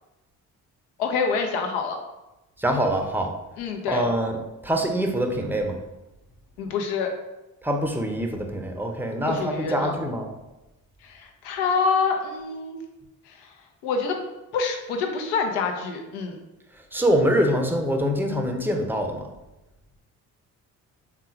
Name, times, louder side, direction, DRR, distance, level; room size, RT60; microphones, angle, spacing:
voice 1, 1.0-2.0 3.6-4.1 6.6-7.1 9.3-10.0 11.0-12.8 13.3-13.4 13.8-14.2 14.5-16.4, left 5 dB, 75° left, 4 dB, 0.7 m, -26 dB
voice 2, 2.6-3.3 3.9-4.3 4.6-5.8 7.6-10.3 16.9-19.2, equal, 5° right, 3 dB, 0.7 m, -24 dB
3.7 x 2.4 x 4.4 m, 1.0 s
hypercardioid pair, 45°, 43 cm